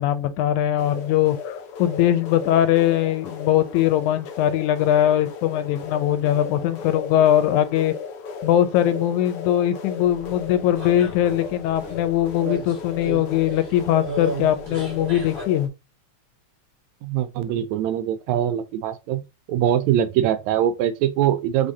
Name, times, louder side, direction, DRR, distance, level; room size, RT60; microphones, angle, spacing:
voice 1, 0.0-7.9 8.4-15.7, left 11 dB, 85° left, 2.1 m, -21 dB
sound 1, 0.8-15.7, left 5 dB, 70° left, 1.4 m, -36 dB
sound 2, 10.0-15.4, right 1 dB, 50° right, 0.7 m, -35 dB
voice 2, 17.0-19.2 19.5-21.7, right 10 dB, 80° right, 1.8 m, -22 dB
4.9 x 3.5 x 2.7 m
omnidirectional pair, 3.4 m